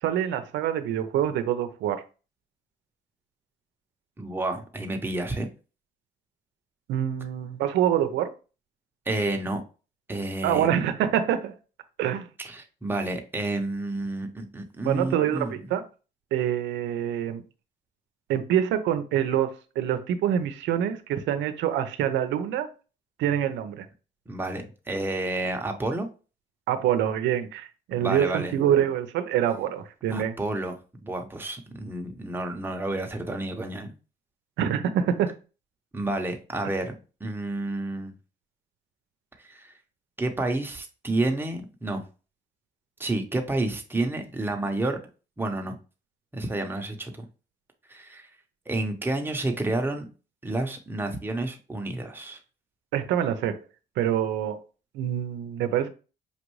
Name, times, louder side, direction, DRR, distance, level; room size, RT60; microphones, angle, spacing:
voice 1, 0.0-2.0 6.9-8.3 10.4-11.6 12.0-12.3 14.8-15.8 16.3-17.4 18.3-22.7 23.2-23.9 26.7-30.4 34.6-35.3 52.9-53.6 54.0-54.6 54.9-55.9, right 10 dB, 85° right, 0.6 m, -26 dB
voice 2, 4.2-5.5 9.1-9.6 10.1-10.7 12.4-15.6 24.3-26.1 28.0-28.5 30.1-30.8 31.0-33.9 35.9-36.9 37.2-38.1 39.4-39.7 40.2-42.0 43.0-45.0 45.4-45.8 46.3-47.2 47.9-48.3 48.7-50.1 50.4-52.4, right 2 dB, 10° right, 0.8 m, -30 dB
5.3 x 2.6 x 3.1 m
cardioid pair, 95°, 18 cm